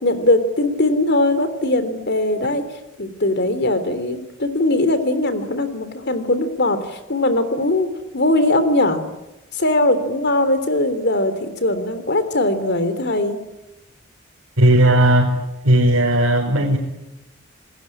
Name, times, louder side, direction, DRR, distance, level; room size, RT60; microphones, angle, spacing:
voice 1, 0.0-2.6 3.0-9.0 9.5-13.4, left 1 dB, 55° left, 11 dB, 3.4 m, -20 dB
voice 2, 14.6-15.4 15.6-16.8, right 1 dB, 75° right, 0 dB, 4.8 m, -15 dB
27.5 x 21.0 x 10.0 m, 0.97 s
head